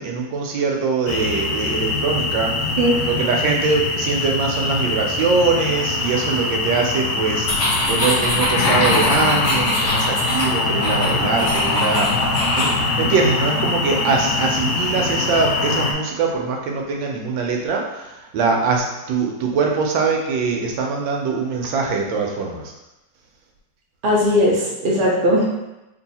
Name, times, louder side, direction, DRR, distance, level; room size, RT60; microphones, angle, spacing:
voice 1, 0.0-2.8 3.1-22.7, right 4 dB, 80° right, 1 dB, 1.4 m, -22 dB
sound 1, 1.1-15.9, left 3 dB, 85° left, 1.4 m, -23 dB
sound 2, 7.4-12.8, left 1 dB, 45° left, 0.9 m, -23 dB
voice 2, 24.0-25.5, equal, 50° right, -3 dB, 0.6 m, -18 dB
3.5 x 2.7 x 4.0 m, 0.95 s
omnidirectional pair, 2.1 m